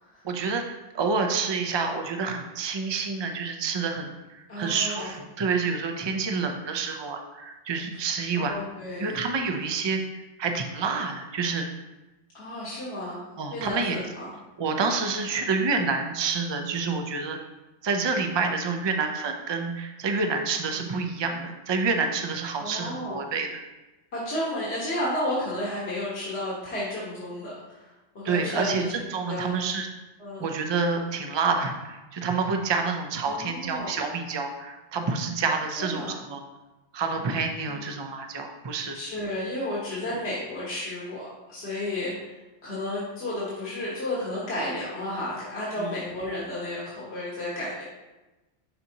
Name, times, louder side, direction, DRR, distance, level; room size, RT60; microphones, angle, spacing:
voice 1, 0.2-0.7 0.9-8.6 9.0-11.7 13.4-14.0 14.6-17.4 17.8-23.6 28.2-29.9 30.4-36.4 36.9-39.0 45.8-45.9, right 4 dB, 30° right, 4 dB, 0.5 m, -28 dB
voice 2, 4.5-5.1 8.3-9.2 12.3-13.2 13.5-14.3 20.7-20.9 22.6-23.2 24.1-29.6 30.2-30.5 33.2-34.0 35.8-36.1 37.7-37.8 38.9-47.8, left 1 dB, 60° left, -8 dB, 1.7 m, -32 dB
11.0 x 4.1 x 2.9 m, 1.1 s
omnidirectional pair, 1.2 m